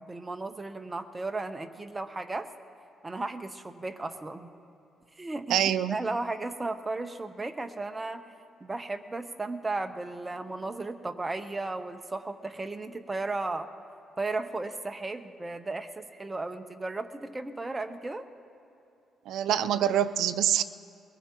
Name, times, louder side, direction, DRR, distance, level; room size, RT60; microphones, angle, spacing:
voice 1, 0.0-2.5 3.0-4.5 5.2-8.2 8.6-13.7 14.2-18.3, right 2 dB, 20° right, 8 dB, 0.9 m, -35 dB
voice 2, 5.5-5.9 19.3-20.6, right 10 dB, 80° right, 13 dB, 0.5 m, -25 dB
22.0 x 18.5 x 3.0 m, 2.8 s
cardioid pair, 90°, 0 cm